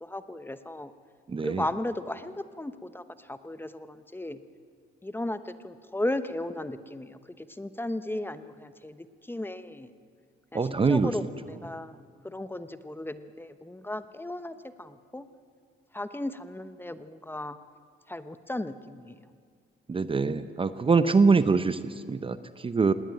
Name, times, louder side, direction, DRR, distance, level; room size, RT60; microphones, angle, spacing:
voice 1, 0.0-0.9 1.4-4.4 5.0-9.9 10.5-12.0 12.2-15.3 15.9-17.6 18.1-19.2, left 1 dB, 10° left, 12 dB, 0.9 m, -36 dB
voice 2, 1.3-1.6 10.5-11.1 19.9-22.9, right 4 dB, 25° right, 12 dB, 0.8 m, -24 dB
19.0 x 18.0 x 9.0 m, 2.1 s
cardioid pair, 90°, 20 cm